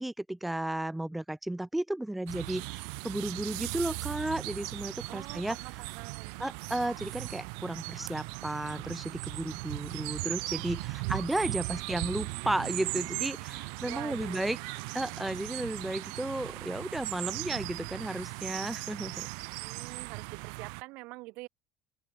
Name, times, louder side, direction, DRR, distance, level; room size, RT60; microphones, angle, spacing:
voice 1, 0.0-5.6 6.4-14.6 14.9-19.3, right 1 dB, 5° right, 1.1 m, -34 dB
sound 1, 2.3-20.8, right 40 dB or more, 90° right, 1.2 m, -38 dB
voice 2, 5.1-6.4 11.0-11.8 13.8-14.5 19.6-21.5, right 23 dB, 70° right, 3.0 m, -46 dB
open air
cardioid pair, 135°, 2 cm